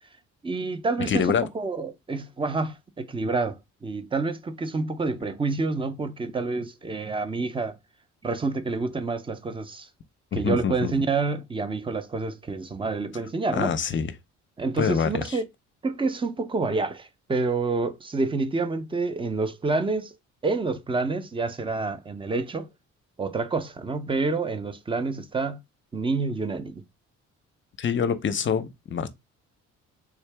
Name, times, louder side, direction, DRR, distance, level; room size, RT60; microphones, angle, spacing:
voice 1, 0.4-7.8 8.2-9.9 10.3-13.7 14.6-15.4 15.8-20.2 20.4-22.7 23.2-25.6 25.9-26.8, right 3 dB, 15° right, 0.6 m, -28 dB
voice 2, 1.1-1.5 10.3-10.9 13.5-14.1 14.8-15.4 27.8-29.1, left 7 dB, 40° left, 0.6 m, -25 dB
3.6 x 2.7 x 3.3 m
cardioid pair, 90°, 30 cm